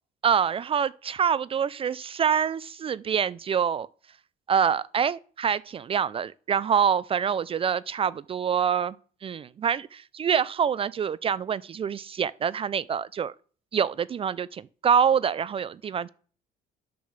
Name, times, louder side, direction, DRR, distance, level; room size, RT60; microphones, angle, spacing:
voice 1, 0.2-3.9 4.5-9.0 9.2-13.3 13.7-16.1, right 7 dB, 35° right, 0.4 m, -26 dB
10.5 x 3.8 x 6.5 m
cardioid pair, 110°, 17 cm